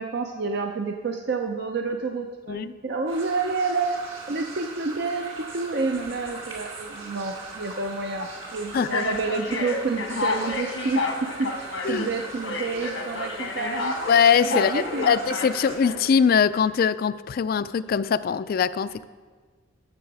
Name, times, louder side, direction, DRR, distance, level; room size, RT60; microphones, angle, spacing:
voice 1, 0.0-4.0 4.3-14.0 14.5-15.2, right 4 dB, 60° right, 4 dB, 0.6 m, -29 dB
voice 2, 2.5-2.8 8.7-9.0 11.8-12.1 14.1-19.1, left 6 dB, 50° left, 14 dB, 0.3 m, -22 dB
sound 1, 3.1-15.8, right 3 dB, 90° right, 2.3 m, -40 dB
sound 2, 5.9-6.4 7.2-7.4 8.2-8.3 8.9-16.2, left 3 dB, 90° left, 1.1 m, -31 dB
13.0 x 7.0 x 4.8 m, 1.4 s
head